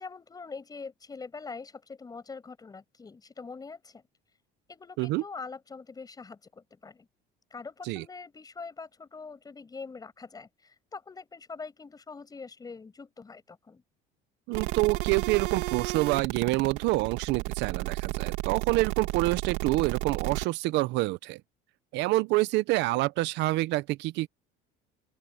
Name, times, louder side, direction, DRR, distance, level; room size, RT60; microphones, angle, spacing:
voice 1, 0.0-4.0 4.7-7.1 7.5-13.8, left 4 dB, 20° left, 6.4 m, -43 dB
voice 2, 14.5-21.4 21.9-24.3, right 20 dB, 70° right, 0.7 m, -27 dB
sound 1, 14.5-20.4, right 20 dB, 90° right, 2.4 m, -32 dB
open air
cardioid pair, 130°, 19 cm